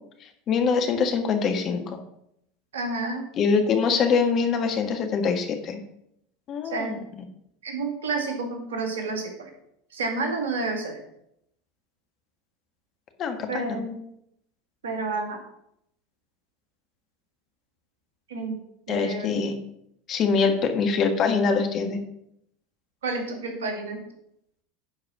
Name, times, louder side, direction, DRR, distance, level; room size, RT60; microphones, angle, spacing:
voice 1, 0.2-2.0 3.4-5.8 6.5-7.0 13.2-13.8 18.9-19.6 20.1-22.0, left 5 dB, 40° left, 6 dB, 1.6 m, -24 dB
voice 2, 2.7-3.2 6.6-6.9 7.6-9.5 9.9-11.0 13.5-14.0 14.8-15.4 18.3-18.6 18.9-19.4 23.0-24.0, right 3 dB, 75° right, 3 dB, 2.0 m, -30 dB
10.0 x 4.8 x 6.1 m, 0.75 s
hypercardioid pair, 80°, 0 cm